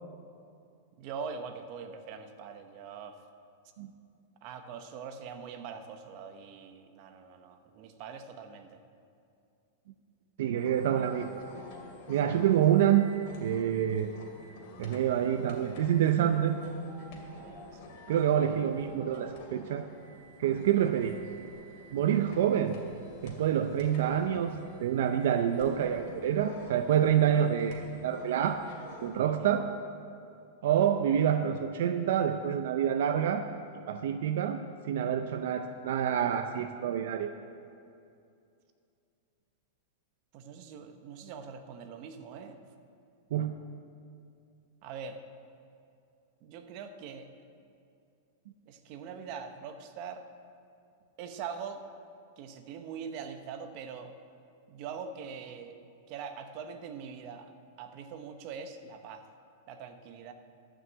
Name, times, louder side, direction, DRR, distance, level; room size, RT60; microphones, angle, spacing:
voice 1, 1.0-3.2 4.4-8.8 17.4-17.8 27.3-27.5 29.3-29.5 40.3-42.6 44.8-45.2 46.4-47.3 48.7-50.2 51.2-51.8 52.4-54.1 54.7-55.7 56.1-57.5 57.8-59.3 59.7-60.3, right 6 dB, 40° right, 7 dB, 0.9 m, -43 dB
voice 2, 10.4-11.3 12.1-13.1 13.4-14.1 14.8-16.6 18.1-19.9 20.4-21.2 21.9-22.8 23.2-28.6 29.0-29.7 30.6-33.4 33.9-34.6 34.9-37.3 43.3-43.5, right 9 dB, 70° right, 8 dB, 0.5 m, -27 dB
sound 1, 10.6-29.2, left 2 dB, 50° left, 2.4 m, -49 dB
12.5 x 6.3 x 7.9 m, 2.5 s
supercardioid pair, 155°, 0 cm